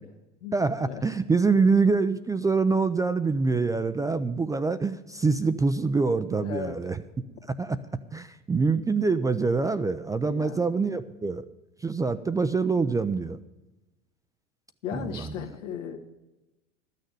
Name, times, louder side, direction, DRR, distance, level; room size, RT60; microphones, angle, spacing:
voice 1, 0.5-7.0 7.6-7.8 8.1-11.4 11.8-13.4 14.9-15.3, right 4 dB, 10° right, 11 dB, 0.3 m, -25 dB
voice 2, 6.4-6.8 10.2-10.6 14.8-16.0, left 8 dB, 80° left, 4 dB, 1.6 m, -36 dB
12.5 x 6.7 x 9.2 m, 1.0 s
hypercardioid pair, 85°, 36 cm